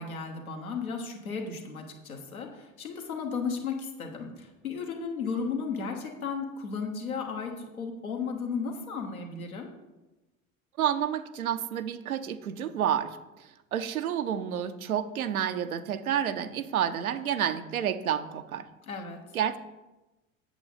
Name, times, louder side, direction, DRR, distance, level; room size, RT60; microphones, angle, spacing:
voice 1, 0.0-9.7 18.9-19.2, left 5 dB, 85° left, 2 dB, 1.4 m, -34 dB
voice 2, 10.8-18.7 19.3-19.6, right 9 dB, 85° right, 11 dB, 0.6 m, -30 dB
8.1 x 7.4 x 4.0 m, 1.1 s
figure-of-eight pair, 75°, 42 cm